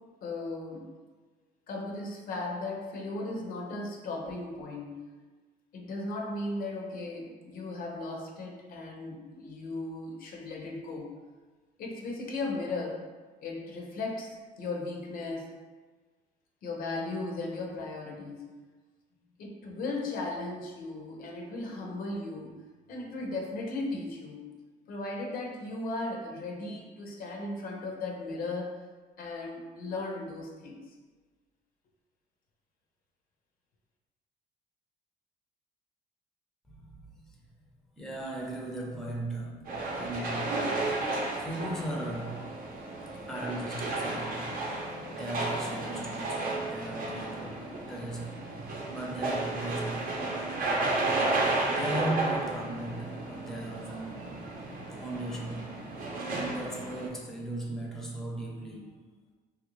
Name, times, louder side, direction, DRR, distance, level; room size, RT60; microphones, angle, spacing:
voice 1, 0.2-0.9 1.7-5.0 5.7-11.2 11.8-13.0 13.4-15.5 16.6-18.5 19.4-22.6 22.9-24.6 24.9-28.8 29.2-30.9, left 2 dB, 60° left, 0 dB, 0.6 m, -36 dB
voice 2, 36.7-37.4 38.0-39.6 39.9-40.6 41.4-42.5 43.3-44.7 45.1-48.4 48.9-50.1 51.7-54.3 55.0-55.8 56.3-58.9, right 1 dB, 5° left, -2 dB, 0.5 m, -37 dB
sound 1, 39.7-57.1, right 2 dB, 55° right, 0.6 m, -33 dB
3.1 x 2.4 x 3.0 m, 1.3 s
cardioid pair, 110°, 17 cm